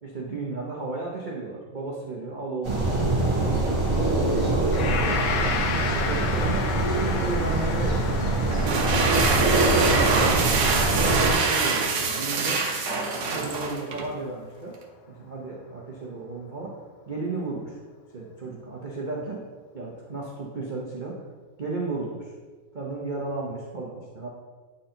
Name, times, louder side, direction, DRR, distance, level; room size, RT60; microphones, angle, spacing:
voice 1, 0.0-3.0 3.4-3.7 4.1-5.5 5.9-8.0 8.5-9.7 10.9-12.6 13.3-14.8 15.1-16.8 17.1-17.8 18.1-19.4 19.7-21.2 21.6-22.3 22.7-24.3, right 3 dB, 85° right, -4 dB, 0.4 m, -34 dB
sound 1, 2.6-11.3, right 2 dB, 40° right, 2.2 m, -24 dB
Gong, 4.7-13.9, left 6 dB, 75° left, 1.3 m, -33 dB
sound 2, 8.5-14.1, right 4 dB, 60° right, 1.2 m, -24 dB
9.2 x 3.8 x 4.4 m, 1.4 s
omnidirectional pair, 2.2 m